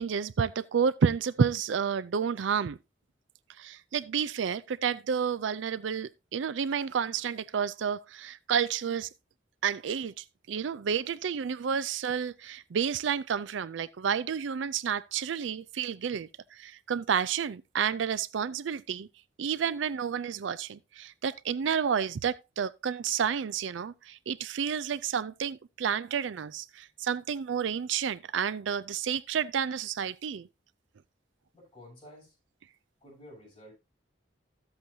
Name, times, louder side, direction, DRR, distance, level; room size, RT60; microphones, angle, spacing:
voice 1, 0.0-2.8 3.6-9.1 9.6-19.1 19.4-30.5, right 7 dB, 80° right, 0.4 m, -30 dB
voice 2, 31.5-32.3 33.0-33.7, equal, 25° left, 7.5 m, -51 dB
14.0 x 7.9 x 2.7 m
head